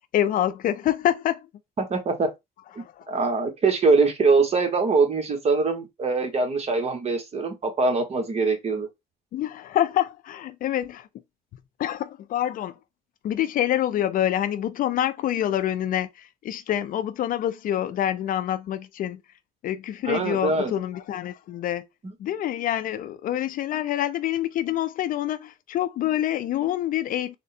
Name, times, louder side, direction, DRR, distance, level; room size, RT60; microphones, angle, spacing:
voice 1, 0.1-1.5 2.8-3.2 9.3-11.1 11.8-12.7 13.2-19.2 19.6-21.9 22.2-27.4, left 11 dB, 55° left, 0.4 m, -26 dB
voice 2, 1.8-2.3 2.7-8.9 20.1-20.7 22.0-22.1, right 4 dB, 40° right, 1.2 m, -23 dB
3.6 x 2.1 x 4.1 m
cardioid pair, 110°, 17 cm